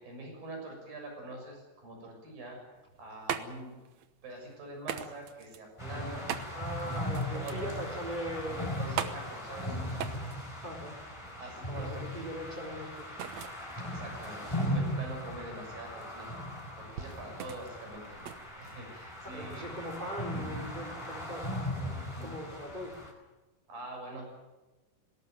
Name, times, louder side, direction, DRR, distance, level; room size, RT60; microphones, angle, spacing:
voice 1, 0.0-2.6 3.0-3.7 4.2-6.6 7.3-7.9 8.8-9.8 11.4-12.1 13.8-16.3 16.8-18.2 18.6-19.7 22.1-22.3 23.7-24.4, right 2 dB, 90° right, 1 dB, 8.5 m, -44 dB
sound 1, 2.8-19.3, right 9 dB, 65° right, 2.1 m, -42 dB
sound 2, 5.8-23.1, left 1 dB, 10° left, 4.2 m, -38 dB
voice 2, 6.5-9.2 10.6-11.0 11.8-13.1 19.2-21.5 22.2-23.0, equal, 15° right, 2 dB, 4.3 m, -40 dB
20.0 x 18.0 x 9.2 m, 1.1 s
omnidirectional pair, 3.9 m